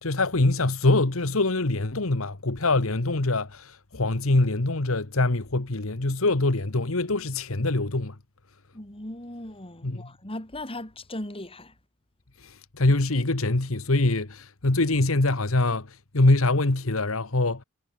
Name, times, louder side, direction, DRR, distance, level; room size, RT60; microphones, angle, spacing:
voice 1, 0.0-8.1 9.8-10.0 12.4-17.6, left 2 dB, 75° left, 1.6 m, -24 dB
voice 2, 8.7-11.7, left 1 dB, 25° left, 4.1 m, -38 dB
head